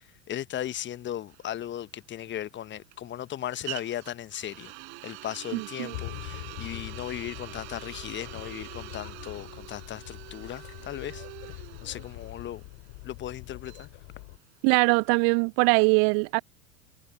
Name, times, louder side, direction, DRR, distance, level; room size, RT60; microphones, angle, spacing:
voice 1, 0.0-4.7 5.0-11.3 11.8-12.6 13.0-13.9, left 11 dB, 30° left, 1.2 m, -37 dB
sound 1, 1.3-15.1, right 24 dB, 55° right, 6.6 m, -45 dB
voice 2, 5.5-5.9 14.6-16.4, right 40 dB or more, 40° right, 0.5 m, -22 dB
sound 2, 5.9-14.4, left 35 dB, 50° left, 3.1 m, -43 dB
figure-of-eight pair, 80°, 39 cm